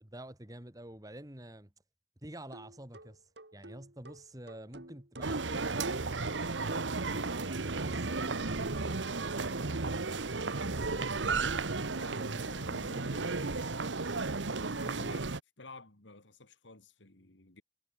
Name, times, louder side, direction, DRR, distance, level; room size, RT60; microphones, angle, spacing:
voice 1, 0.0-1.7 2.2-3.2 3.5-6.1 6.6-10.1, right 1 dB, 20° right, 2.0 m, -49 dB
sound 1, 2.5-9.2, right 1 dB, 70° right, 3.0 m, -49 dB
sound 2, 5.2-15.4, right 3 dB, 85° right, 1.3 m, -34 dB
voice 2, 11.9-14.2 14.7-15.3 15.6-17.6, left 2 dB, 85° left, 3.1 m, -52 dB
head